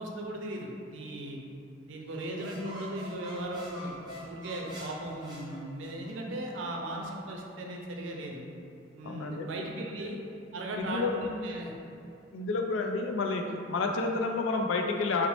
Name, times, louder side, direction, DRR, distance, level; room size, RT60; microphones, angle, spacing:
voice 1, 0.0-1.4 1.9-8.5 9.0-10.2 10.5-11.7, right 1 dB, 85° right, 0 dB, 0.5 m, -37 dB
sound 1, 2.1-6.2, equal, 25° right, 0.7 m, -46 dB
voice 2, 9.0-9.5 10.0-10.2 10.8-11.2 12.3-15.3, left 3 dB, 85° left, 4 dB, 0.3 m, -30 dB
3.9 x 2.0 x 3.0 m, 2.6 s
head